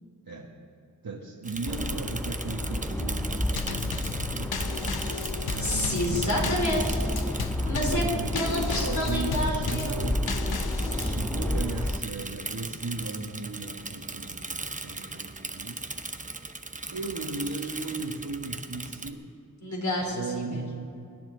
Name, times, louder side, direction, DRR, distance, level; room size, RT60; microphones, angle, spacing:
voice 1, 1.0-4.7 5.5-6.7 7.9-10.2 11.0-15.8 16.9-19.3 20.1-21.2, right 3 dB, 65° right, -3 dB, 1.6 m, -36 dB
Bicycle / Mechanisms, 1.4-19.1, right 2 dB, 20° right, 0.9 m, -38 dB
sound 1, 1.7-12.0, left 1 dB, 5° left, 0.4 m, -31 dB
Drum kit / Snare drum / Bass drum, 3.6-11.2, left 6 dB, 80° left, 0.8 m, -35 dB
voice 2, 5.6-8.1 8.3-10.1 19.6-20.6, left 1 dB, 50° left, 0 dB, 3.9 m, -29 dB
25.0 x 10.5 x 3.9 m, 2.6 s
wide cardioid pair, 60°, 37 cm